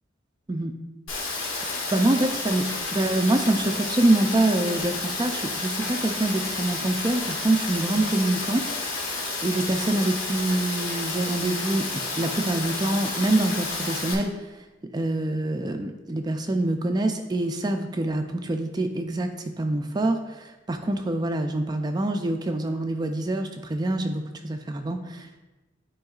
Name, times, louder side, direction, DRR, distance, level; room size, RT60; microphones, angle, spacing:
Rain, 1.1-14.1, left 3 dB, 85° left, 1.4 m, -31 dB
voice 1, 1.9-2.7 2.9-8.6 9.4-14.6 14.9-19.3 19.6-25.4, right 1 dB, 20° right, 5 dB, 0.3 m, -25 dB
10.5 x 4.6 x 2.4 m, 1.1 s
head